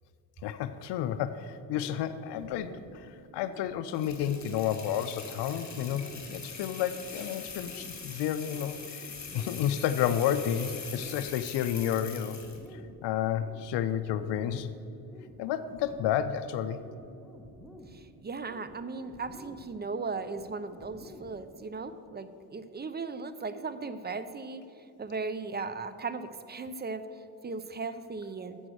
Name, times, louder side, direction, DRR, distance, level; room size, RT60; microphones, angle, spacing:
voice 1, 0.4-9.1 9.3-12.4 12.7-14.7 15.4-16.8, left 10 dB, 60° left, 10 dB, 0.6 m, -31 dB
sound 1, 1.7-21.7, equal, ahead, 1.4 m, -52 dB
sound 2, 3.9-12.7, left 5 dB, 35° left, 2.4 m, -43 dB
voice 2, 17.9-28.6, right 4 dB, 20° right, 12 dB, 0.6 m, -37 dB
7.4 x 6.2 x 7.9 m, 2.7 s
supercardioid pair, 70°, 47 cm